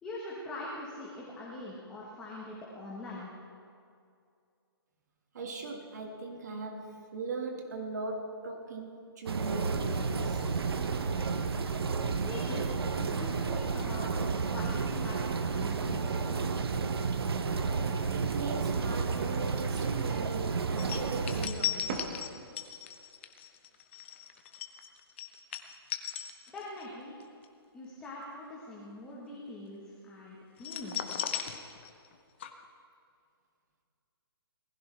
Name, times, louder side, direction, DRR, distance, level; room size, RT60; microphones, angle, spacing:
voice 1, 0.0-3.3 12.2-12.7 13.0-14.1 14.4-16.2 26.5-27.1 27.7-31.2, left 1 dB, 5° left, -6 dB, 1.1 m, -43 dB
voice 2, 5.3-10.5 18.1-22.2, right 3 dB, 45° right, 2 dB, 1.9 m, -39 dB
sound 1, 9.3-21.5, right 5 dB, 70° right, 1.1 m, -31 dB
sound 2, 20.8-26.9 27.2-27.4 30.6-32.1 32.4-32.5, left 9 dB, 30° left, 0.7 m, -37 dB
sound 3, 21.8-22.9 23.5-24.5, right 4 dB, 25° right, 1.1 m, -47 dB
19.5 x 15.5 x 3.3 m, 2.4 s
hypercardioid pair, 175°, 13 cm